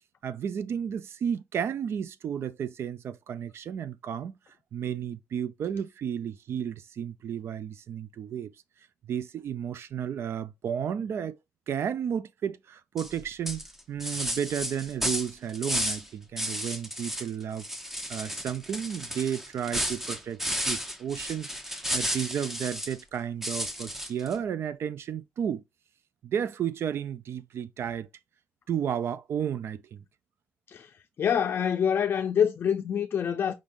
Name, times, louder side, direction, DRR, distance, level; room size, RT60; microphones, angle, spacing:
voice 1, 0.2-4.3 4.7-8.5 9.0-11.4 11.7-17.7 18.1-21.5 21.9-25.6 26.2-28.1 28.7-30.0, right 8 dB, 65° right, 0.4 m, -33 dB
sound 1, 13.0-13.2 13.5-16.1 16.4-17.3 17.6-23.0 23.4-24.3, equal, 5° right, 0.7 m, -33 dB
voice 2, 31.2-33.5, left 8 dB, 55° left, 0.4 m, -26 dB
5.0 x 3.6 x 2.5 m
cardioid pair, 105°, 5 cm